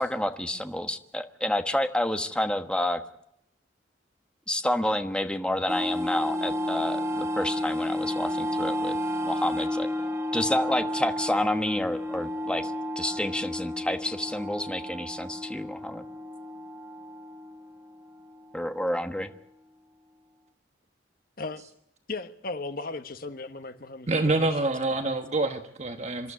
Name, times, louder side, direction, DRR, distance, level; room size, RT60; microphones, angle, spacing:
voice 1, 0.0-3.0 4.5-9.0 9.2-9.9 10.3-16.0 18.5-19.3, left 1 dB, 5° left, 1.2 m, -29 dB
sound 1, 5.7-18.7, left 1 dB, 15° right, 1.6 m, -32 dB
voice 2, 22.1-25.1, left 3 dB, 50° left, 1.3 m, -37 dB
voice 3, 24.1-26.3, right 2 dB, 40° right, 1.2 m, -26 dB
26.5 x 12.0 x 9.9 m
head